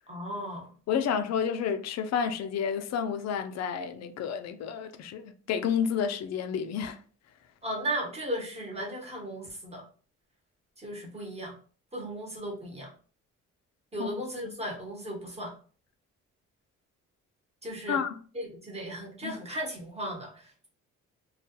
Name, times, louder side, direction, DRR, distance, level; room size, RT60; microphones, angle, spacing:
voice 1, 0.1-0.7 7.6-9.8 10.8-11.5 11.9-12.9 13.9-15.5 17.6-18.0 18.3-20.7, right 1 dB, 20° right, 1.0 m, -36 dB
voice 2, 0.9-7.0 14.0-14.1 14.4-14.6 17.9-18.2 19.2-19.4, left 7 dB, 60° left, 0.4 m, -30 dB
2.3 x 2.2 x 2.8 m
cardioid pair, 90°, 30 cm